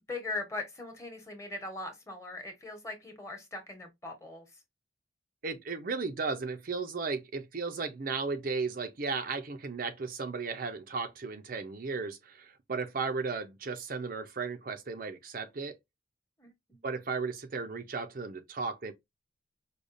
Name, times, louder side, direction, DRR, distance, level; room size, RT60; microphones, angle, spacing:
voice 1, 0.1-4.5 16.4-16.8, left 2 dB, 15° left, 1.1 m, -40 dB
voice 2, 5.4-15.8 16.8-18.9, right 4 dB, 45° right, 0.5 m, -35 dB
4.9 x 2.3 x 2.6 m
head